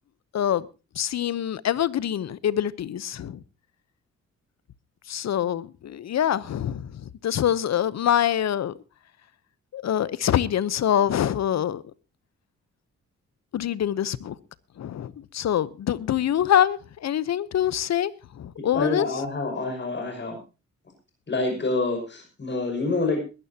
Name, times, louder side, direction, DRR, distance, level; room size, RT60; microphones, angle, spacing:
voice 1, 0.3-0.7 0.9-3.4 5.1-8.7 9.7-11.8 13.5-14.4 14.8-19.1, left 10 dB, 65° left, 0.8 m, -25 dB
voice 2, 18.7-20.4 21.3-23.2, left 3 dB, 40° left, 6.1 m, -27 dB
21.5 x 12.5 x 2.8 m
cardioid pair, 110°, 29 cm